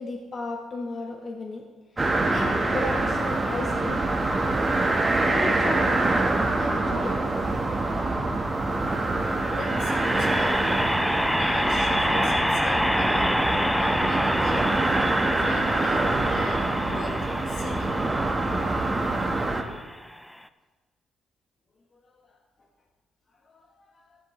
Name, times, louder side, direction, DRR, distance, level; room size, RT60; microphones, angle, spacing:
voice 1, 0.0-1.6 2.3-4.0 5.2-6.0 6.6-7.2 9.7-9.8 23.5-23.7 24.0-24.2, left 2 dB, 40° left, 1 dB, 1.3 m, -34 dB
sound 1, 2.0-19.6, right 2 dB, 25° right, 1.5 m, -25 dB
sound 2, 8.5-20.3, equal, 5° left, 0.5 m, -28 dB
voice 2, 9.3-13.4 13.8-14.9 15.4-17.2 17.5-18.1, left 2 dB, 85° left, -1 dB, 3.7 m, -39 dB
14.0 x 11.0 x 3.3 m, 1.3 s
cardioid pair, 90°, 0 cm